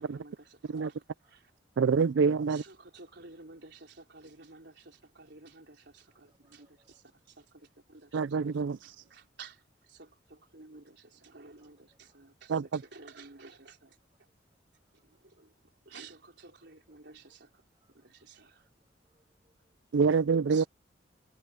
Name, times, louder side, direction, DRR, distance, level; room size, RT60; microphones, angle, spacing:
voice 1, 0.0-1.5 2.5-14.0 14.9-15.5 15.8-17.7 17.9-18.7 19.9-20.1 20.5-20.7, right 4 dB, 65° right, 4.3 m, -53 dB
voice 2, 1.8-2.6 8.1-8.9 12.5-12.6 19.9-20.6, right 5 dB, 85° right, 0.4 m, -26 dB
voice 3, 6.1-7.0 8.9-9.1 11.6-12.2 14.8-14.9 17.7-18.3 18.5-19.8, right 2 dB, 25° right, 5.7 m, -74 dB
head